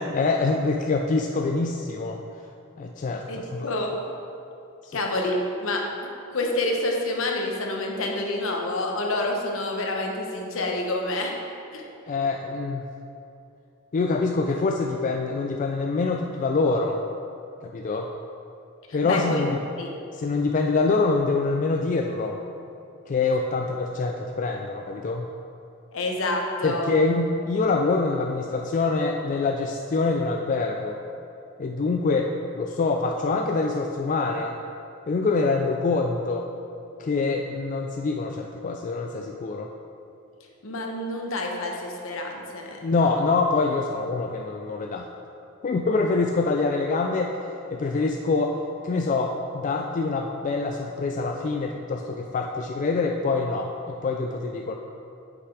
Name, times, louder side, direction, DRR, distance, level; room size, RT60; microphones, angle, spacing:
voice 1, 0.0-2.2 2.8-3.2 3.5-3.7 4.8-5.0 12.1-12.8 13.9-17.0 17.6-18.1 18.9-19.6 20.1-22.4 23.1-25.3 26.6-31.0 31.6-34.5 35.1-36.5 37.0-39.7 42.8-45.1 45.6-47.3 47.7-48.6 48.8-54.7, left 3 dB, 35° left, 2 dB, 0.3 m, -25 dB
voice 2, 3.3-3.9 4.9-5.8 6.3-11.3 11.7-11.8 18.9-19.4 19.8-19.9 25.9-26.9 40.6-43.1, left 2 dB, 70° left, 1 dB, 1.0 m, -28 dB
6.6 x 5.9 x 4.7 m, 2.7 s
head